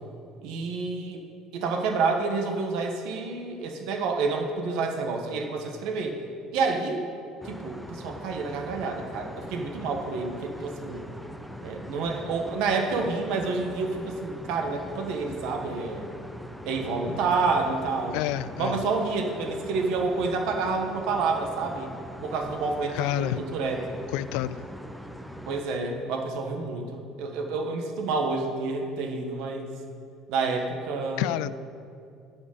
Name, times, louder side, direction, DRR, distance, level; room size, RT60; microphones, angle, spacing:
voice 1, 0.4-1.2 1.5-6.2 6.5-7.0 7.4-11.1 11.6-16.1 16.7-18.2 18.6-23.8 25.5-29.7 30.3-31.3, right 4 dB, 60° right, 3 dB, 1.5 m, -29 dB
sound 1, 7.4-25.6, equal, ahead, 0.5 m, -42 dB
voice 2, 18.1-18.8 22.9-23.4 24.1-24.6 31.2-31.6, left 14 dB, 75° left, 17 dB, 0.3 m, -28 dB
11.0 x 5.3 x 8.6 m, 2.5 s
cardioid pair, 170°, 0 cm